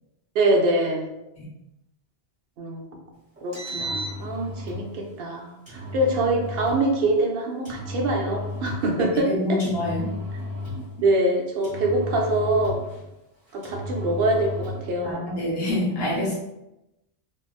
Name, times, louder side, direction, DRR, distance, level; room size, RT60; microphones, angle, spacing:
voice 1, 0.3-1.1 2.6-2.9 3.4-9.6 11.0-12.8 13.5-15.2, right 2 dB, 70° right, 1 dB, 0.8 m, -24 dB
Engine, 3.4-4.8 5.7-6.8 7.6-8.9 9.6-10.9 11.6-13.0 13.6-14.9, left 1 dB, 45° right, 1.6 m, -33 dB
voice 2, 9.1-10.1 15.0-16.4, left 1 dB, 65° left, -6 dB, 1.2 m, -26 dB
3.4 x 2.1 x 2.3 m, 0.92 s
omnidirectional pair, 1.1 m